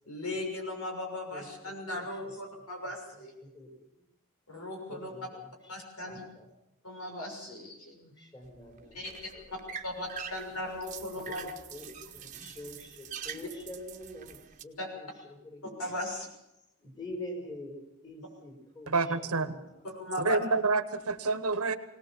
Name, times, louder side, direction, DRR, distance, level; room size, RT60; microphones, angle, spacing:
voice 1, 0.1-3.3 4.5-5.1 5.7-6.2 6.8-7.9 8.9-9.1 9.8-11.5 14.8-14.9 15.8-16.3 19.8-20.4, left 1 dB, 80° left, 2 dB, 6.4 m, -37 dB
voice 2, 1.3-2.2 2.6-4.0 4.9-5.5 6.0-6.5 7.9-9.7 11.2-15.7 16.8-19.8, left 1 dB, 20° left, 3 dB, 4.4 m, -47 dB
sound 1, 8.4-14.6, right 7 dB, 35° right, 1.3 m, -45 dB
voice 3, 18.9-19.5 20.2-21.8, right 3 dB, 80° right, 11 dB, 1.4 m, -28 dB
21.5 x 18.5 x 7.2 m, 0.88 s
head